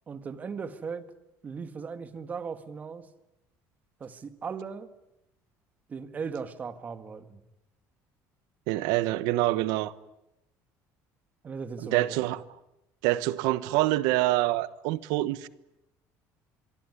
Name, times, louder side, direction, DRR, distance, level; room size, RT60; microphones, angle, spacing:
voice 1, 0.1-1.1 1.4-3.1 4.0-4.9 5.9-7.4 11.4-12.2, right 5 dB, 25° right, 1.8 m, -37 dB
voice 2, 8.7-9.9 11.9-12.4 13.0-15.5, right 17 dB, 85° right, 1.1 m, -26 dB
25.5 x 23.0 x 9.8 m
cardioid pair, 170°, 7 cm